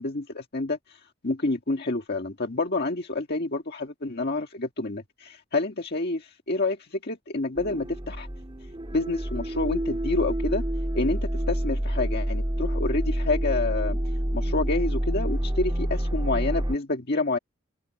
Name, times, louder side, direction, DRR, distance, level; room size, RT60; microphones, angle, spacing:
voice 1, 0.0-8.3 8.9-10.6 10.9-14.0 14.3-17.4, left 2 dB, 55° left, 1.6 m, -28 dB
sound 1, 7.5-16.7, equal, 25° right, 1.8 m, -28 dB
open air
head